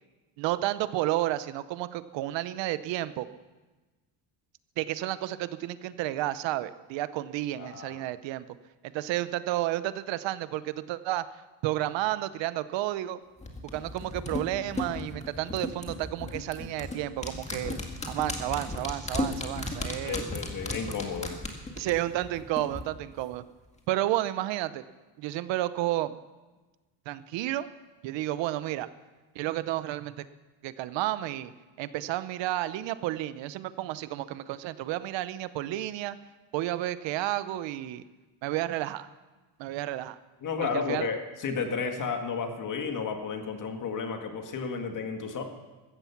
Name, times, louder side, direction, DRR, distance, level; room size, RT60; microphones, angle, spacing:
voice 1, 0.4-3.3 4.8-8.5 8.9-11.2 11.6-13.2 13.7-17.8 18.1-20.2 21.8-23.4 23.9-24.8 25.2-26.2 27.1-27.7 28.0-28.9 29.3-30.2 30.6-31.5 31.8-36.2 36.5-38.0 38.4-39.1 39.6-40.2 40.6-41.1, right 15 dB, 80° right, 14 dB, 0.8 m, -31 dB
voice 2, 7.6-8.0 20.0-21.3 40.4-45.4, left 5 dB, 45° left, 5 dB, 2.0 m, -32 dB
sound 1, 13.4-22.8 23.1-23.2, left 2 dB, 15° left, 1.9 m, -35 dB
16.0 x 14.0 x 5.9 m, 1.2 s
cardioid pair, 140°, 44 cm